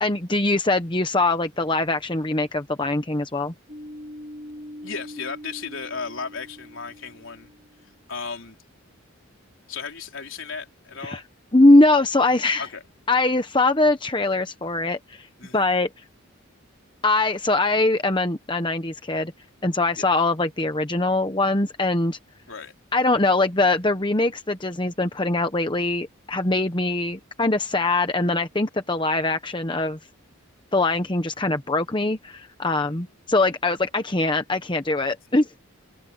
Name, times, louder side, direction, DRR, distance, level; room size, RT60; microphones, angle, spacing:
voice 1, 0.0-3.5 11.0-11.2 11.5-12.7 13.1-15.3 15.5-15.9 17.0-19.3 19.6-22.2 22.9-30.0 30.7-35.5, left 2 dB, 20° left, 1.0 m, -22 dB
sound 1, 3.7-7.9, left 1 dB, 35° right, 2.6 m, -42 dB
voice 2, 4.8-7.5 8.1-8.6 9.7-11.2 12.6-12.8 15.4-15.6 20.0-20.1 22.5-22.7 32.8-33.0, left 5 dB, 65° left, 4.0 m, -35 dB
open air
head